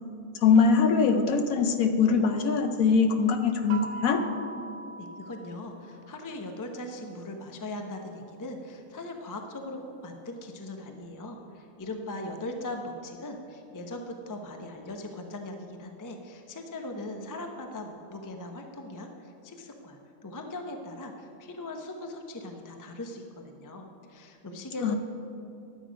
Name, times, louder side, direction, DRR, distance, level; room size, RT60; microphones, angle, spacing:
voice 1, 0.4-4.2 24.8-25.0, left 5 dB, 65° left, 6 dB, 1.1 m, -22 dB
sound 1, 3.7-6.4, right 3 dB, 75° right, 1.2 m, -41 dB
voice 2, 5.0-24.9, left 1 dB, 20° left, 4 dB, 0.5 m, -40 dB
11.5 x 8.3 x 5.1 m, 2.6 s
omnidirectional pair, 1.7 m